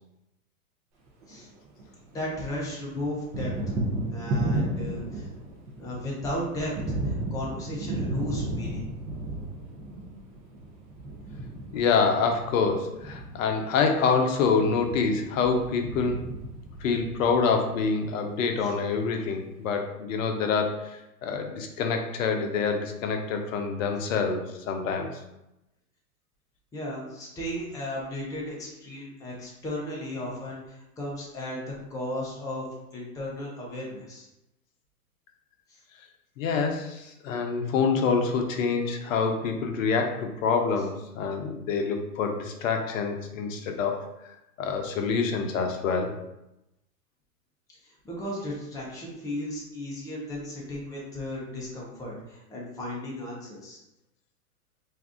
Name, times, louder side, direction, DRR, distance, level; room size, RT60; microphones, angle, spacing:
Thunder, 1.1-2.3 2.6-17.8, right 1 dB, 30° right, 0.6 m, -34 dB
voice 1, 2.1-3.5 4.1-5.3 5.8-8.8 18.6-18.7 26.7-32.7 32.9-34.3 35.7-35.8 47.8-53.8, left 1 dB, 10° left, -4 dB, 0.5 m, -35 dB
voice 2, 11.7-16.2 16.8-25.1 36.4-44.0 44.6-46.1, left 5 dB, 55° left, 4 dB, 0.7 m, -26 dB
2.7 x 2.3 x 3.5 m, 0.89 s
hypercardioid pair, 120°, 46 cm